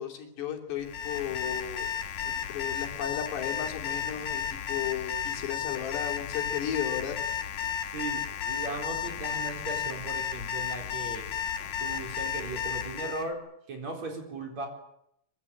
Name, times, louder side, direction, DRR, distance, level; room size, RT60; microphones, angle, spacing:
voice 1, 0.0-1.9 2.2-4.4 4.7-7.2, left 9 dB, 80° left, 3 dB, 5.3 m, -34 dB
Alarm, 0.8-13.3, left 9 dB, 55° left, 2.3 m, -33 dB
voice 2, 7.9-11.3 11.8-13.4 13.7-14.7, right 3 dB, 40° right, 3 dB, 5.4 m, -37 dB
24.0 x 24.0 x 8.6 m, 0.77 s
omnidirectional pair, 4.8 m